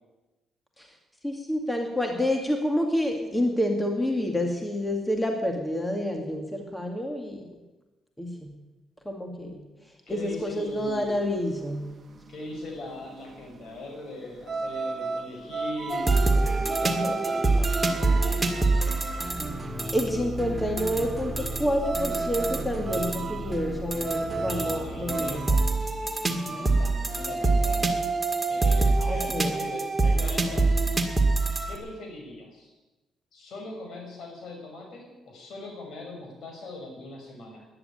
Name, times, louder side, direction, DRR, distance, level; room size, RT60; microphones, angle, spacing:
voice 1, 1.2-7.5 8.2-8.5 9.1-9.6 10.1-11.9 16.8-17.2 19.9-25.4 26.3-26.8 29.1-29.6, left 1 dB, 10° left, 3 dB, 2.3 m, -28 dB
voice 2, 10.1-11.2 12.3-17.7 18.0-18.9 24.4-25.5 26.4-28.0 28.5-31.1 31.7-32.7 33.3-37.7, left 2 dB, 65° left, 1 dB, 6.2 m, -40 dB
sound 1, 10.1-28.2, right 3 dB, 45° right, 1.1 m, -35 dB
sound 2, 15.9-31.8, right 3 dB, 15° right, 2.1 m, -26 dB
13.5 x 11.0 x 9.1 m, 1.1 s
cardioid pair, 90°, 0 cm